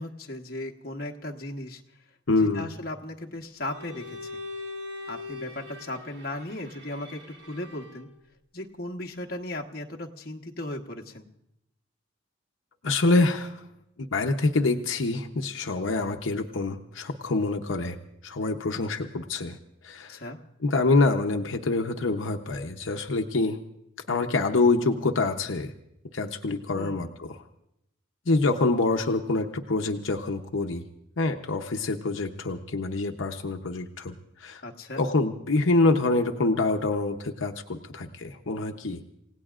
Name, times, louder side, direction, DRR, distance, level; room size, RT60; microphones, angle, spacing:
voice 1, 0.0-1.8 2.4-4.4 5.1-8.1 8.5-11.3 20.1-20.4 26.7-27.1 34.6-35.0, left 1 dB, 50° left, 1 dB, 1.2 m, -37 dB
voice 2, 2.3-2.7 12.8-13.6 14.1-18.0 18.2-19.6 19.8-20.2 20.6-23.6 24.1-25.7 26.1-27.3 28.3-30.8 31.2-34.1 34.4-34.6 35.0-39.0, left 3 dB, 80° left, 4 dB, 0.8 m, -26 dB
Bowed string instrument, 3.6-8.2, left 3 dB, 60° right, 1.7 m, -41 dB
29.0 x 17.5 x 2.5 m, 0.83 s
head